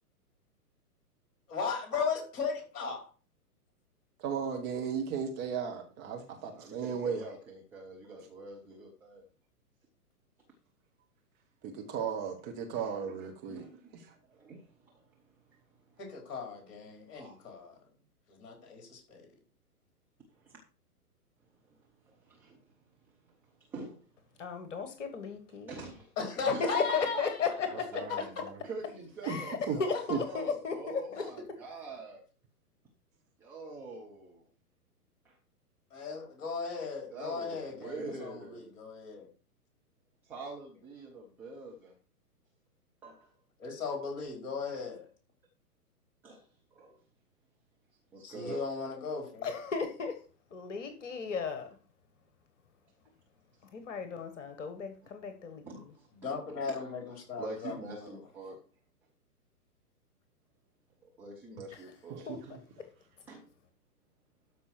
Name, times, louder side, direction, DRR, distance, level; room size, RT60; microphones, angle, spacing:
voice 1, 1.5-3.1 16.0-17.7 18.3-19.2 26.2-27.4 35.9-39.3 43.6-45.0 48.2-49.5 56.2-58.2, left 5 dB, 30° left, 5.0 m, -37 dB
voice 2, 4.2-7.2 11.6-13.7 27.9-28.2 29.3-29.4 29.7-29.8 30.1-30.2 62.1-62.6, right 7 dB, 20° right, 1.2 m, -35 dB
voice 3, 6.5-9.3 12.7-13.1 13.5-14.0 14.3-15.6 15.9-16.0 17.1-17.4 20.3-20.6 21.7-21.8 22.0-22.7 23.1-24.1 25.7-26.1 26.5-27.5 28.2-28.3 28.6-32.2 33.4-34.4 35.2-35.4 37.1-38.7 40.2-41.9 43.0-43.3 44.7-44.8 46.2-46.4 46.8-47.0 48.1-48.6 55.6-56.9 57.4-58.6 61.2-62.5 63.3-63.5, right 3 dB, 5° right, 0.5 m, -45 dB
voice 4, 24.4-25.7 26.6-28.0 29.2-31.2 49.4-50.2 50.5-51.7 53.7-55.8 61.7-61.9 62.3-62.6, left 5 dB, 50° left, 1.6 m, -35 dB
13.0 x 5.3 x 4.7 m
figure-of-eight pair, 115°, 47 cm